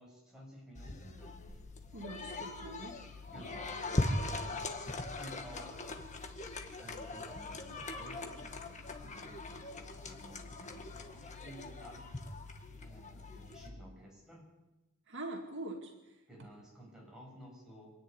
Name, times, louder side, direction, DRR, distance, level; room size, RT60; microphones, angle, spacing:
voice 1, 0.0-1.6 3.3-3.9 4.3-4.6 4.9-5.9 6.8-12.1 12.8-14.5 16.3-17.9, equal, 5° right, -3 dB, 7.5 m, -53 dB
sound 1, 0.8-13.7, left 2 dB, 35° left, 1.8 m, -40 dB
voice 2, 1.9-3.0 3.4-3.6 15.1-16.2, right 2 dB, 60° right, 2 dB, 2.3 m, -44 dB
26.0 x 10.0 x 9.8 m, 1.0 s
head